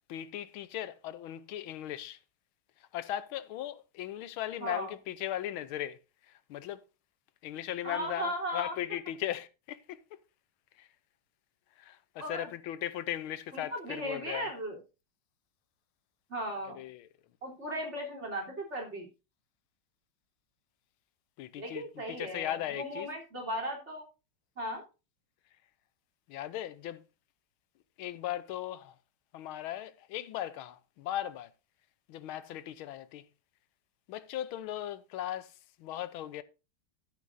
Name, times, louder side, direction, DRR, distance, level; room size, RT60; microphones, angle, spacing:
voice 1, 0.1-2.2 2.8-6.0 6.2-6.8 7.4-10.0 10.8-10.9 11.8-14.5 16.7-17.1 21.4-23.1 26.3-27.0 28.0-29.0 29.3-31.5 32.1-33.2 34.1-36.4, left 12 dB, 85° left, 1.5 m, -38 dB
voice 2, 4.6-4.9 7.8-8.8 12.2-12.5 13.5-14.8 16.3-16.8 17.4-19.1 21.6-24.0 24.6-24.8, equal, 30° right, 3.6 m, -37 dB
12.5 x 9.6 x 2.6 m
omnidirectional pair, 2.2 m